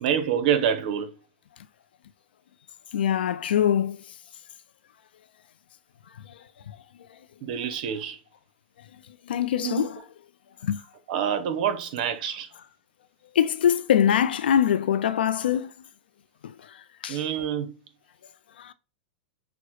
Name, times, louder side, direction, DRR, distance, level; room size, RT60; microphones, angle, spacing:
voice 1, 0.0-1.1 7.4-8.2 9.6-9.9 11.1-12.5 17.1-17.7, right 8 dB, 60° right, 0.7 m, -27 dB
voice 2, 2.9-4.0 6.2-6.8 9.2-10.0 10.6-10.8 13.3-15.7 16.4-17.2 18.6-18.7, left 9 dB, 85° left, 0.4 m, -24 dB
6.1 x 2.1 x 3.1 m
hypercardioid pair, 125°, 5 cm